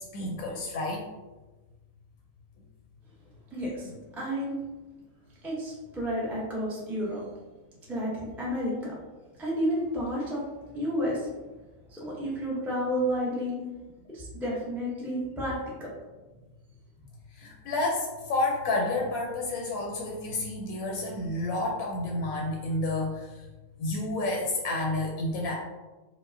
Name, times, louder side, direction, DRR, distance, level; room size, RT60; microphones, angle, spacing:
voice 1, 0.1-1.0 17.4-23.3 23.8-25.5, left 2 dB, 85° left, -1 dB, 1.1 m, -30 dB
voice 2, 3.5-4.6 5.4-7.2 7.9-8.9 9.4-10.4 10.7-11.3 11.9-13.6 14.1-15.9, equal, ahead, -6 dB, 0.4 m, -31 dB
4.8 x 2.1 x 2.6 m, 1.2 s
omnidirectional pair, 1.5 m